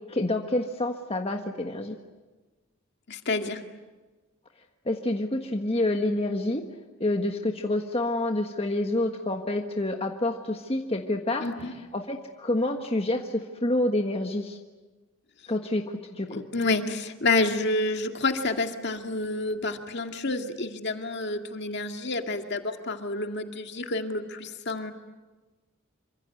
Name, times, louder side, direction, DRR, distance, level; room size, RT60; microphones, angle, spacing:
voice 1, 0.1-2.0 4.8-6.6 7.0-11.5 11.9-14.6 15.5-16.4, left 1 dB, 30° left, 3 dB, 1.5 m, -28 dB
voice 2, 3.1-3.6 11.4-11.7 16.3-24.9, left 2 dB, 55° left, 5 dB, 2.1 m, -29 dB
27.5 x 25.0 x 7.9 m, 1.3 s
head